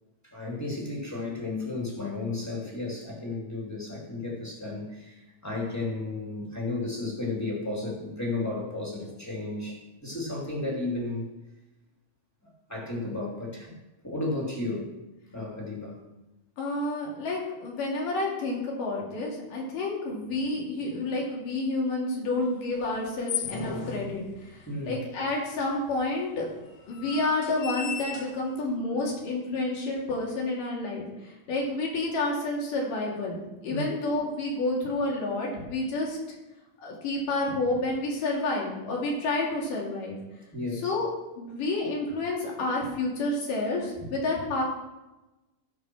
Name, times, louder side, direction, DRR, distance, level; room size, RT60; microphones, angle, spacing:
voice 1, 0.2-11.3 12.4-13.8 14.0-14.9 15.3-16.0 24.7-25.0 33.7-34.0 40.5-40.9, left 2 dB, 5° left, -4 dB, 2.3 m, -33 dB
voice 2, 16.6-26.5 26.9-36.2 36.8-40.2 40.7-41.1 41.4-44.6, left 2 dB, 85° left, -3 dB, 4.2 m, -29 dB
sound 1, 22.7-24.8 25.6-25.7 25.9-26.0 26.6-28.7, left 6 dB, 65° left, 2.1 m, -36 dB
15.5 x 5.3 x 6.2 m, 1.0 s
omnidirectional pair, 3.7 m